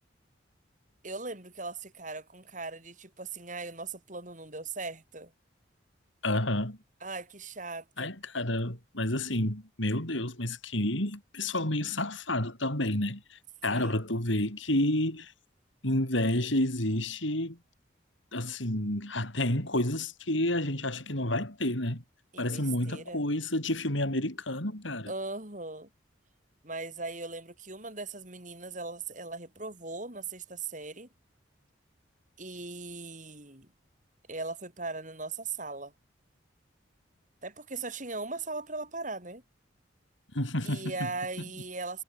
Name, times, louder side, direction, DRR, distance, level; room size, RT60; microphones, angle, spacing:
voice 1, 1.0-5.3 7.0-8.1 13.7-14.0 22.3-23.3 25.1-25.9 26.6-31.1 32.4-33.7 34.3-35.9 37.4-39.4 40.6-42.0, right 3 dB, 40° right, 6.1 m, -39 dB
voice 2, 6.2-6.8 8.0-15.3 15.8-17.6 18.3-22.0 22.4-25.1 40.3-41.1, left 1 dB, 80° left, 7.6 m, -30 dB
head